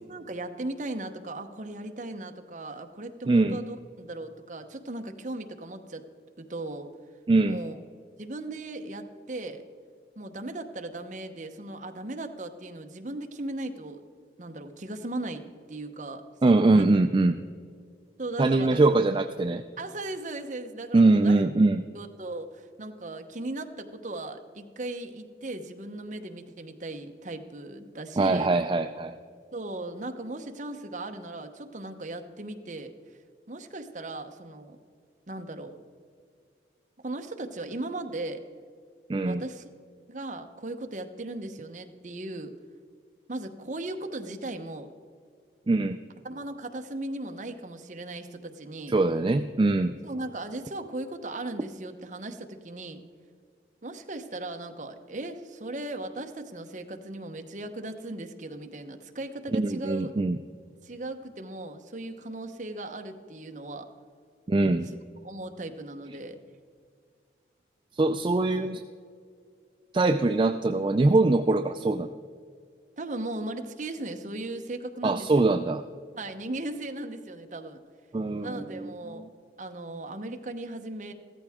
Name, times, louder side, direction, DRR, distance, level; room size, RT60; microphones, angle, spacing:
voice 1, 0.0-6.1 6.4-6.9 7.5-7.8 8.2-9.6 10.2-14.0 14.4-16.9 18.2-18.8 19.8-21.4 21.9-28.5 29.5-32.9 33.5-34.8 35.3-35.8 37.0-38.4 39.2-39.7 40.1-42.5 43.3-44.9 46.2-48.9 50.0-53.0 53.8-60.1 60.8-63.9 65.2-66.4 73.0-75.5 76.1-77.8 78.4-79.3 79.6-81.1, right 2 dB, 40° right, 6 dB, 0.9 m, -37 dB
voice 2, 3.3-3.6 7.3-7.6 16.4-17.4 18.4-19.6 20.9-21.8 28.2-29.2 39.1-39.4 45.7-46.0 48.9-49.9 59.5-60.4 64.5-64.9 68.0-68.8 69.9-72.1 75.0-75.8 78.1-78.9 79.2-79.3, right 2 dB, 25° right, 7 dB, 0.3 m, -22 dB
15.0 x 13.5 x 3.6 m, 2.1 s
head